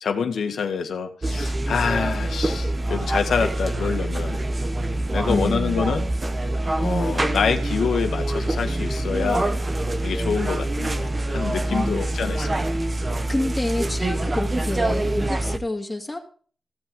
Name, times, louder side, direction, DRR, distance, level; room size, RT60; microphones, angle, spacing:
voice 1, 0.0-4.4 5.1-6.0 6.8-9.4 10.0-12.6, left 6 dB, 75° left, 6 dB, 1.7 m, -26 dB
sound 1, 1.2-15.6, right 1 dB, 35° right, 1.2 m, -25 dB
voice 2, 5.3-6.1 11.7-12.0 12.4-12.6 13.3-16.2, left 2 dB, 20° left, 0 dB, 2.5 m, -28 dB
16.0 x 7.8 x 3.8 m, 0.43 s
cardioid pair, 55°, 0 cm